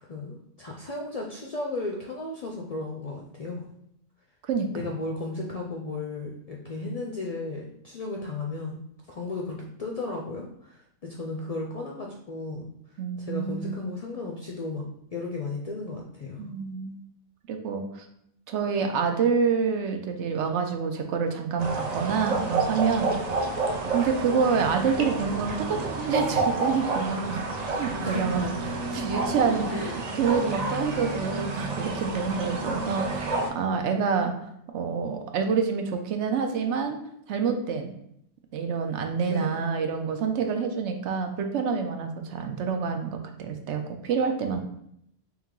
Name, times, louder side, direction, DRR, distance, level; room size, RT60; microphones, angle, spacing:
voice 1, 0.1-3.7 4.7-14.9 15.1-16.5 18.7-19.0 23.4-23.8 28.0-28.5 29.7-29.9 30.6-30.8 32.4-32.9 39.3-39.7, left 3 dB, 55° left, -1 dB, 0.4 m, -35 dB
voice 2, 4.5-4.9 13.0-13.9 16.4-17.0 17.5-18.1 18.5-23.2 23.9-27.5 27.7-28.5 28.9-34.3 34.7-37.0 37.3-37.9 38.5-44.6, right 6 dB, 80° right, 5 dB, 0.9 m, -27 dB
sound 1, 21.6-33.5, right 3 dB, 50° right, 0.5 m, -29 dB
3.4 x 3.1 x 3.7 m, 0.74 s
omnidirectional pair, 1.2 m